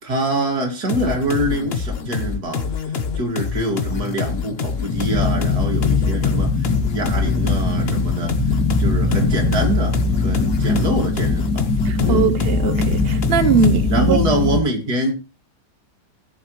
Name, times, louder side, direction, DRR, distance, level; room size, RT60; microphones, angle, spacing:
voice 1, 0.0-8.3 8.8-11.7 12.0-12.3 13.5-15.1, right 1 dB, 65° right, 2.9 m, -25 dB
sound 1, 0.9-14.0, left 6 dB, 40° left, 1.1 m, -26 dB
sound 2, 4.9-14.6, left 3 dB, 90° left, 3.4 m, -21 dB
voice 2, 11.8-14.2, right 5 dB, 45° right, 0.9 m, -20 dB
17.5 x 7.2 x 3.1 m
omnidirectional pair, 1.8 m